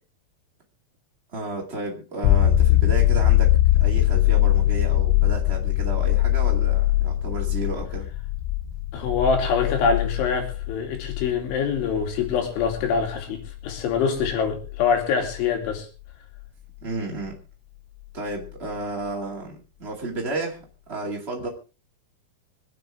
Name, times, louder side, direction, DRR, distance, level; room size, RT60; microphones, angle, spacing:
voice 1, 1.3-8.1 16.8-17.4 18.1-21.5, right 2 dB, 75° right, -1 dB, 0.5 m, -32 dB
sound 1, 2.2-15.7 18.5-18.6, left 14 dB, 90° left, 3.6 m, -22 dB
voice 2, 8.9-15.9, left 6 dB, 75° left, 4 dB, 5.0 m, -24 dB
25.5 x 8.9 x 3.5 m, 0.33 s
omnidirectional pair, 5.6 m